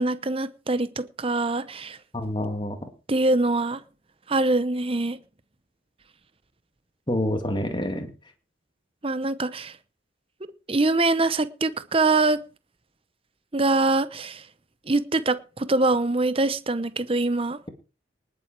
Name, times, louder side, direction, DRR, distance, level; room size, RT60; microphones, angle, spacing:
voice 1, 0.0-2.0 3.1-3.8 4.3-5.2 9.0-9.8 10.7-12.4 13.5-14.4 14.9-17.7, right 2 dB, 30° right, 0.8 m, -24 dB
voice 2, 2.1-2.9 7.1-8.1, left 1 dB, 25° left, 2.2 m, -27 dB
19.5 x 7.7 x 4.7 m
head